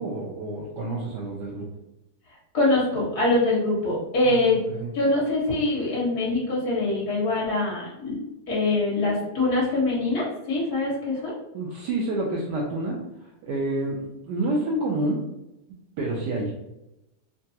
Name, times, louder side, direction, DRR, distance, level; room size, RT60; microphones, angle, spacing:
voice 1, 0.0-1.7 4.2-4.9 11.5-15.2 16.0-16.5, right 2 dB, 75° right, -2 dB, 1.0 m, -29 dB
voice 2, 2.5-4.6 4.9-8.2 8.5-11.3, left 2 dB, 50° left, -5 dB, 1.8 m, -24 dB
3.8 x 2.3 x 2.7 m, 0.92 s
omnidirectional pair, 2.3 m